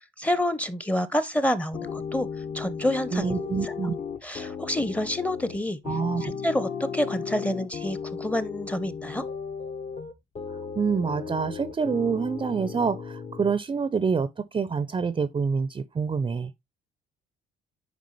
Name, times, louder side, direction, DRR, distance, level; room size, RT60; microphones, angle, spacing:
voice 1, 0.2-2.3 2.5-3.3 3.6-3.7 4.2-5.8 6.2-9.2, left 1 dB, 5° left, 0.7 m, -28 dB
sound 1, 1.7-13.5, left 6 dB, 40° left, 1.0 m, -35 dB
voice 2, 3.1-3.9 5.9-6.3 10.8-16.5, right 5 dB, 25° right, 0.5 m, -27 dB
9.4 x 4.8 x 3.1 m
cardioid pair, 115°, 20 cm